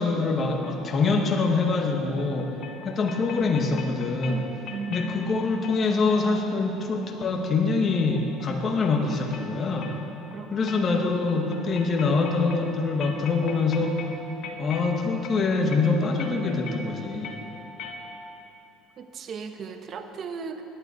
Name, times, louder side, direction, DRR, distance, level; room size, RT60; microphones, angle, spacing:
voice 1, 0.0-2.5 2.8-4.5 4.9-10.0 10.5-14.1 14.6-17.3, left 3 dB, 40° left, 2 dB, 1.9 m, -25 dB
sound 1, 0.6-18.5, left 4 dB, 60° left, 1.5 m, -43 dB
voice 2, 4.7-5.6 10.3-11.1 19.0-20.6, right 6 dB, 45° right, 7 dB, 1.1 m, -37 dB
17.5 x 11.5 x 4.6 m, 2.9 s
supercardioid pair, 100°, 0 cm